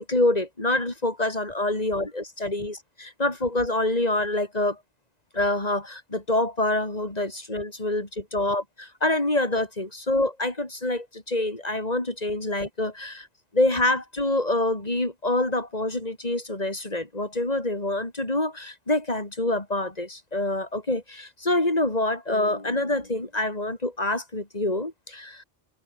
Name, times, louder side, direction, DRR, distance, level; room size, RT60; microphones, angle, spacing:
voice 1, 0.0-4.8 5.3-13.3 13.5-25.4, left 2 dB, 35° left, 4.4 m, -26 dB
omnidirectional pair, 1.2 m